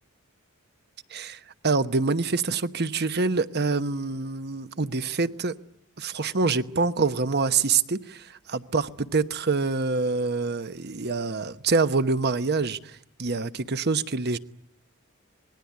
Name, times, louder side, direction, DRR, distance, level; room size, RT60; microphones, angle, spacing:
voice 1, 1.1-5.5 6.0-14.4, right 4 dB, 50° right, 1.0 m, -26 dB
26.5 x 20.0 x 9.5 m
head